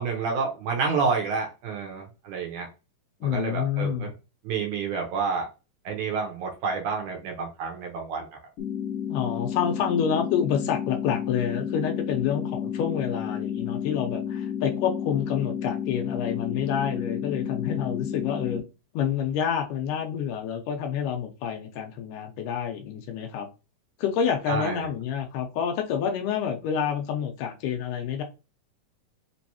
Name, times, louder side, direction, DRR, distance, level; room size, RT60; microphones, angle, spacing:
voice 1, 0.0-2.7 3.2-4.1 4.4-5.5 5.9-8.3 24.5-24.9, right 5 dB, 75° right, 2.1 m, -29 dB
voice 2, 3.2-4.1 9.1-18.6 18.9-23.5 24.0-28.2, left 8 dB, 80° left, 2.2 m, -28 dB
sound 1, 8.6-18.6, left 8 dB, 50° left, 2.1 m, -31 dB
5.3 x 3.1 x 2.8 m
omnidirectional pair, 3.9 m